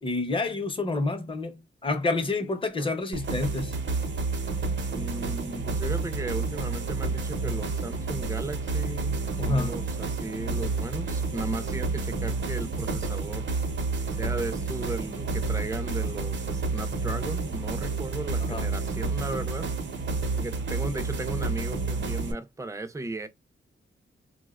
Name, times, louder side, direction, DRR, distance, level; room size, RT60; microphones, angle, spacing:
voice 1, 0.0-1.6 1.8-3.7 9.4-9.7 18.5-18.6, left 3 dB, 25° left, 0.6 m, -28 dB
sound 1, 3.1-22.3, right 3 dB, 65° right, 0.6 m, -30 dB
voice 2, 4.9-13.5 14.2-19.7 20.3-23.3, right 2 dB, 15° right, 0.4 m, -36 dB
4.1 x 2.1 x 2.3 m
wide cardioid pair, 165°, 20 cm